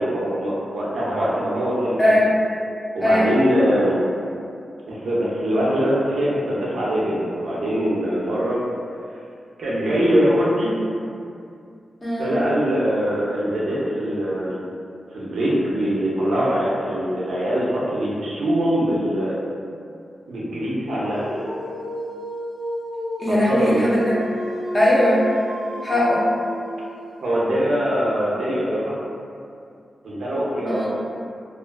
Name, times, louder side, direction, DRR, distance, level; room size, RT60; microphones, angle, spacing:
voice 1, 0.0-2.2 2.9-4.0 4.9-8.6 9.6-10.7 12.2-14.6 15.1-19.4 20.3-21.4 23.5-23.8 27.2-28.9 30.0-30.9, equal, 85° right, -7 dB, 0.5 m, -22 dB
voice 2, 2.0-2.3 3.0-3.3 12.0-12.3 23.2-24.2 24.7-25.2 25.8-26.3 30.7-30.9, left 1 dB, 25° left, -8 dB, 0.7 m, -19 dB
Dog, 20.9-27.3, equal, 50° left, 1.1 m, -32 dB
2.4 x 2.3 x 2.2 m, 2.4 s
wide cardioid pair, 90°, 0 cm